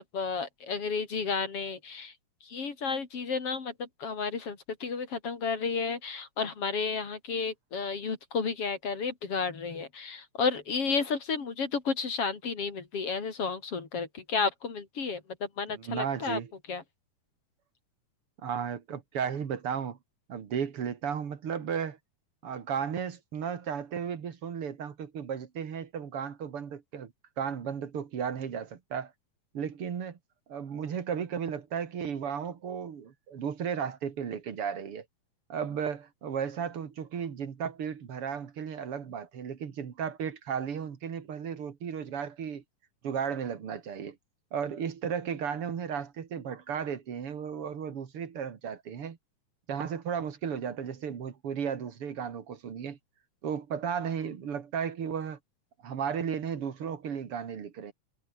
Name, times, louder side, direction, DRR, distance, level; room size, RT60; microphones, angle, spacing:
voice 1, 0.0-2.1 2.4-16.4 16.7-16.8, left 5 dB, 45° left, 3.7 m, -32 dB
voice 2, 15.7-16.5 18.4-20.0 20.3-22.0 22.4-29.1 29.5-30.2 30.5-35.0 35.5-42.6 43.0-44.2 44.5-49.2 49.7-53.0 53.4-55.4 55.8-57.9, right 7 dB, 45° right, 2.6 m, -34 dB
omnidirectional pair, 3.8 m